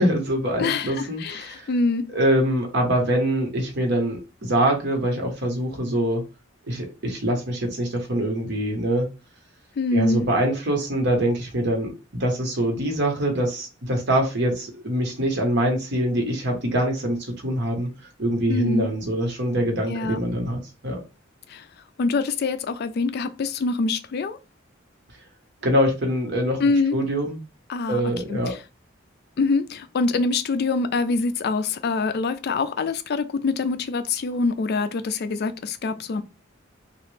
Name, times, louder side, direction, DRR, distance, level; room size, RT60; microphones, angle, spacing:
voice 1, 0.0-1.7 2.1-6.2 6.7-9.1 9.9-11.9 12.2-17.9 18.2-21.0 25.6-26.6 26.9-27.4 27.9-28.6, right 1 dB, 60° right, 1.1 m, -24 dB
voice 2, 0.6-2.1 9.8-10.2 18.5-18.9 19.9-20.2 21.5-21.7 22.0-24.4 26.6-27.0 27.7-28.0 28.3-28.6 29.4-36.2, left 3 dB, 55° left, 0.4 m, -25 dB
3.0 x 2.4 x 3.2 m
head